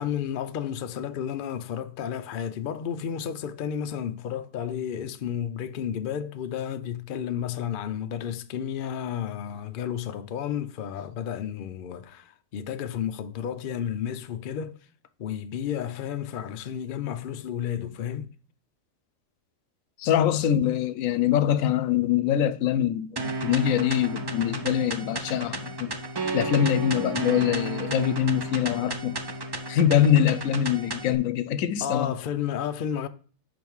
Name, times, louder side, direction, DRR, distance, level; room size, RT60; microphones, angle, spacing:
voice 1, 0.0-14.7 15.2-18.3 31.8-33.1, left 9 dB, 60° left, 0.5 m, -32 dB
voice 2, 20.0-26.0 26.3-29.2 29.7-32.1, left 10 dB, 85° left, 1.0 m, -24 dB
sound 1, 23.2-31.2, right 2 dB, 30° right, 0.4 m, -33 dB
5.5 x 5.1 x 4.6 m
omnidirectional pair, 1.4 m